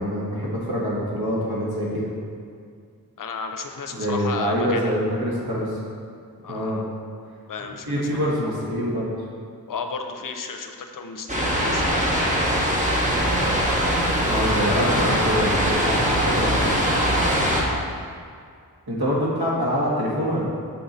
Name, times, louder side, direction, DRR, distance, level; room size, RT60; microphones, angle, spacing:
voice 1, 0.0-2.1 3.9-5.8 6.5-6.8 7.9-9.1 14.3-16.5 18.9-20.5, equal, 85° right, -5 dB, 1.5 m, -25 dB
voice 2, 3.2-5.0 6.4-6.9 7.5-8.3 9.7-11.9 14.6-15.2, left 5 dB, 60° left, 6 dB, 0.6 m, -33 dB
sound 1, 11.3-17.6, equal, 20° right, 1.0 m, -22 dB
6.6 x 3.9 x 4.2 m, 2.2 s
wide cardioid pair, 85°, 36 cm